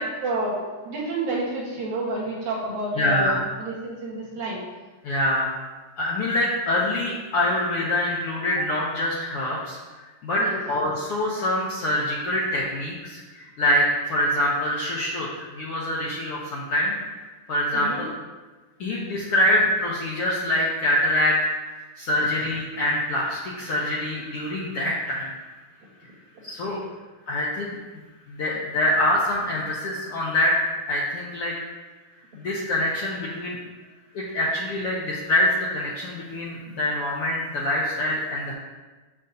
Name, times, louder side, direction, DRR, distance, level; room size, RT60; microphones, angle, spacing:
voice 1, 0.2-0.6 0.8-3.3 3.6-4.6 10.4-10.6 17.7-18.0 26.6-26.9, right 2 dB, 70° right, -5 dB, 2.9 m, -29 dB
voice 2, 3.0-3.4 5.0-5.5 6.0-9.8 10.2-18.1 18.8-25.3 26.4-26.8 27.3-27.8 28.3-30.5 30.9-31.5 32.3-33.6 34.1-38.5, left 1 dB, 70° left, -4 dB, 1.4 m, -25 dB
7.8 x 6.4 x 2.8 m, 1.3 s
omnidirectional pair, 3.5 m